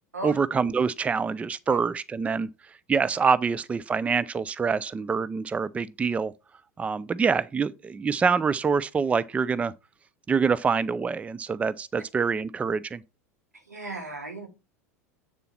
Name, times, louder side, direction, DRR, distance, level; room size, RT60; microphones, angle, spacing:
voice 1, 0.2-6.3 6.8-9.7 10.3-13.0, right 5 dB, 15° right, 0.4 m, -26 dB
voice 2, 13.7-14.5, right 2 dB, 85° right, 2.7 m, -35 dB
8.3 x 6.9 x 4.3 m
figure-of-eight pair, 80°, 8 cm